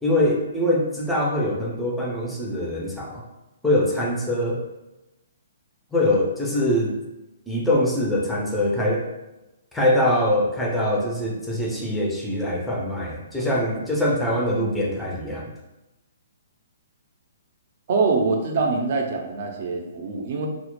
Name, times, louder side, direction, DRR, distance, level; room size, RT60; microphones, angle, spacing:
voice 1, 0.0-3.2 3.6-4.6 5.9-7.0 7.5-9.1 9.7-15.5, left 1 dB, 5° left, -3 dB, 0.4 m, -23 dB
voice 2, 17.9-20.5, right 4 dB, 55° right, 1 dB, 0.5 m, -24 dB
2.0 x 2.0 x 2.9 m, 0.98 s
hypercardioid pair, 135°, 0 cm